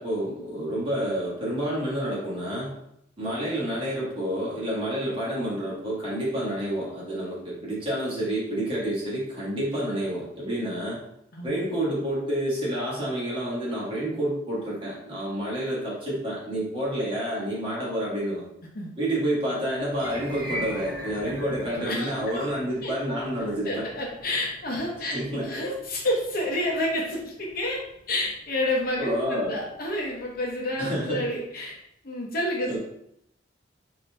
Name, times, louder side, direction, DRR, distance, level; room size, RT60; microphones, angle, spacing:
voice 1, 0.0-2.7 3.2-11.0 11.4-18.4 19.0-23.8 25.1-25.6 29.0-29.6 30.8-31.3 32.7-32.8, right 1 dB, 30° right, -7 dB, 1.6 m, -29 dB
voice 2, 11.3-11.7 18.7-18.9 21.9-22.5 22.8-22.9 23.6-27.8 28.1-31.8 32.0-32.8, left 1 dB, 50° left, -1 dB, 0.9 m, -29 dB
sound 1, 20.0-30.2, equal, 50° right, 1.4 m, -42 dB
4.2 x 2.8 x 3.3 m, 0.77 s
head